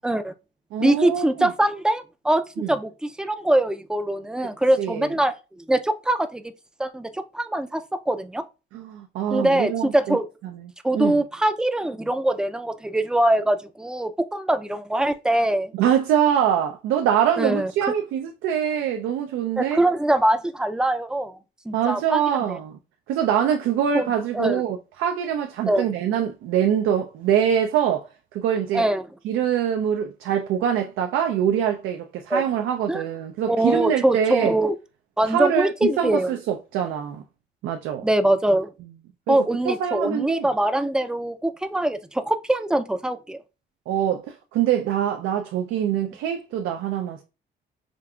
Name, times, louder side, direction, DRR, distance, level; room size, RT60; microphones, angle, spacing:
voice 1, 0.0-0.3 0.8-6.4 6.8-8.4 9.3-10.3 10.8-15.7 17.4-17.7 19.6-21.4 21.7-22.2 22.5-22.6 23.9-24.0 24.3-24.6 25.7-25.8 28.7-29.0 32.3-32.4 32.9-33.0 33.5-34.8 35.2-36.3 38.0-38.7 39.3-43.4, right 1 dB, 5° right, 0.3 m, -23 dB
voice 2, 0.7-1.5 2.6-2.7 4.8-5.1 8.7-10.2 10.4-10.5 10.9-11.2 15.8-19.8 21.7-22.8 23.1-28.8 29.2-34.5 35.2-37.2 37.6-38.0 39.3-39.4 39.6-40.5 43.9-47.2, right 9 dB, 90° right, 0.4 m, -24 dB
5.1 x 2.4 x 2.2 m
cardioid pair, 90°, 20 cm